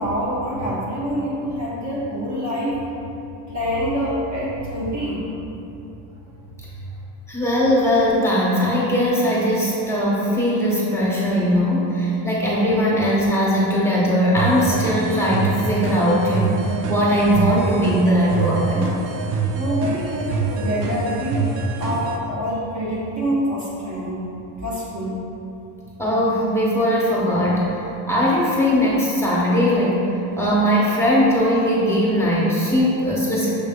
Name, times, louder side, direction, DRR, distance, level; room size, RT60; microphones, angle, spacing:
voice 1, 0.0-2.8 3.5-5.3 19.5-24.2 24.6-25.2, equal, 35° right, -7 dB, 0.9 m, -26 dB
voice 2, 7.3-19.0 26.0-27.8 28.1-30.0 30.4-33.5, equal, 5° left, -7 dB, 1.1 m, -19 dB
sound 1, 14.4-22.2, right 4 dB, 60° right, 0.6 m, -25 dB
6.4 x 3.2 x 2.3 m, 2.9 s
supercardioid pair, 80°, 49 cm